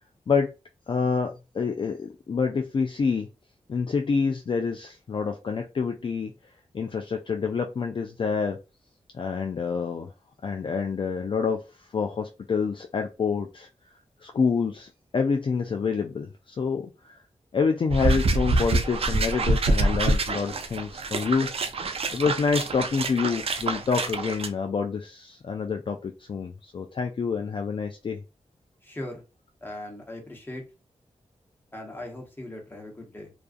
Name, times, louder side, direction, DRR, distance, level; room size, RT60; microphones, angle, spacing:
voice 1, 0.9-3.3 3.7-6.3 6.7-8.6 9.1-10.1 10.4-11.6 11.9-13.7 14.2-16.9 17.5-21.5 22.1-28.2, left 5 dB, 45° left, 4 dB, 0.4 m, -27 dB
sound 1, 17.9-24.5, right 2 dB, 55° right, 0.4 m, -26 dB
voice 2, 28.8-29.2 29.6-30.6 31.7-33.3, left 1 dB, 15° left, 1 dB, 1.1 m, -39 dB
2.4 x 2.3 x 2.4 m, 0.28 s
cardioid pair, 65°, 12 cm